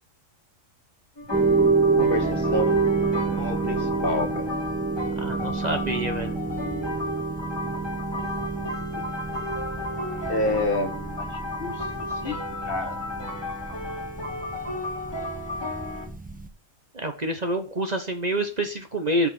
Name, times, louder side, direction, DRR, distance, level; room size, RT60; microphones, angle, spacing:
sound 1, 1.2-16.1, left 2 dB, 20° left, 2.8 m, -34 dB
sound 2, 1.3-16.5, right 4 dB, 5° right, 0.8 m, -28 dB
voice 1, 2.0-2.7 3.4-4.5 9.0-9.1 10.3-12.4 12.6-13.0, left 2 dB, 45° left, 6 dB, 1.5 m, -29 dB
voice 2, 5.2-6.4 16.9-19.3, right 1 dB, 35° right, 6 dB, 1.0 m, -27 dB
8.4 x 5.1 x 7.6 m, 0.38 s
omnidirectional pair, 1.4 m